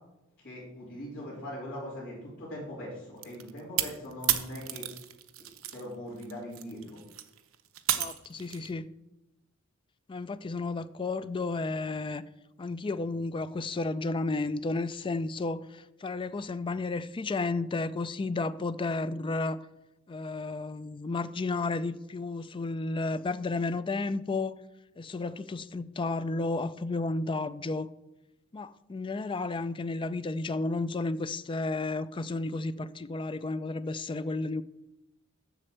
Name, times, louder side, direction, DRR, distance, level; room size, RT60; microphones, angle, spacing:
voice 1, 0.4-4.9 5.4-7.0, left 1 dB, 50° left, 3.9 m, -41 dB
sound 1, 3.2-5.8 6.2-8.7, right 12 dB, 75° right, 0.8 m, -32 dB
voice 2, 8.0-8.9 10.1-12.2 12.6-19.7 20.1-24.6 25.0-27.9 28.5-34.6, left 3 dB, 25° left, 0.4 m, -32 dB
7.6 x 6.5 x 7.7 m
head